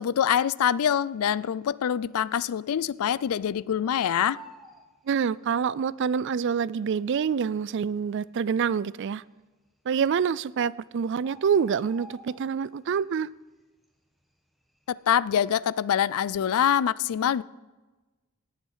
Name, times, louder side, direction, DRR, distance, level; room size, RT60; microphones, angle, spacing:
voice 1, 0.0-4.4 15.1-17.4, left 9 dB, 80° left, 0.4 m, -25 dB
Bird, 1.2-1.8 2.1-2.2 2.4-3.6 3.9-5.7 6.6-6.7 7.3-7.4 7.6-7.7 8.4-8.8 9.8-9.9 10.2-10.3 10.6-12.9 13.2-13.5 13.8-15.2 15.5-15.8, right 1 dB, ahead, 1.2 m, -50 dB
voice 2, 5.1-9.2 9.9-13.3, right 7 dB, 55° right, 0.3 m, -26 dB
18.0 x 7.3 x 5.6 m
head